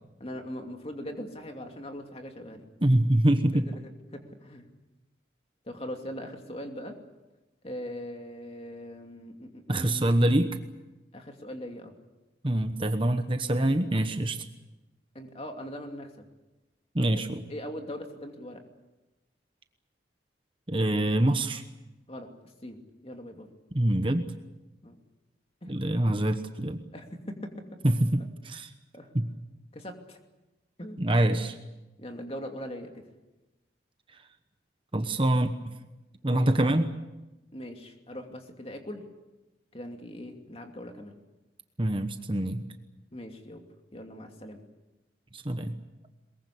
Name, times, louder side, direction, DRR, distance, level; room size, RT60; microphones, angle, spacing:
voice 1, 0.2-2.7 3.5-4.7 5.7-7.0 7.6-10.0 11.1-11.9 15.1-16.3 17.0-17.2 17.5-18.6 22.1-22.3 22.6-23.5 24.8-25.0 25.6-25.7 26.9-27.5 28.9-29.1 29.7-30.2 30.8-31.0 32.0-32.9 36.2-36.5 37.5-39.0 39.7-41.2 43.1-43.6 43.9-44.6, equal, 30° left, 4 dB, 2.7 m, -40 dB
voice 2, 2.8-3.6 9.7-10.6 12.4-14.4 16.9-17.4 20.7-21.6 23.7-24.3 25.7-26.8 27.8-28.7 29.1-29.3 31.0-31.6 34.9-35.7 36.2-36.9 41.8-42.6 45.3-45.8, right 1 dB, 30° right, 8 dB, 1.1 m, -25 dB
22.5 x 21.5 x 8.5 m, 1.0 s
head